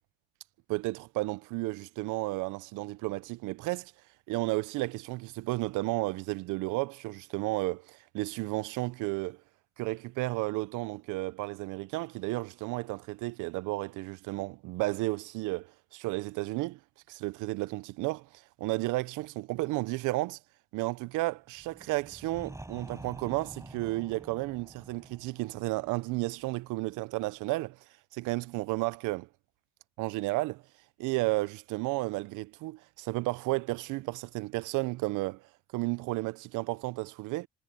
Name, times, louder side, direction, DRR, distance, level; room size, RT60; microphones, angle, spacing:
voice 1, 0.7-3.9 4.3-9.4 9.8-16.8 17.1-18.3 18.6-20.4 20.7-27.8 28.1-29.3 30.0-30.6 31.0-35.4 35.7-37.5, right 21 dB, 70° right, 0.6 m, -33 dB
sound 1, 21.5-27.3, right 2 dB, 10° right, 7.2 m, -49 dB
supercardioid pair, 95°, 32 cm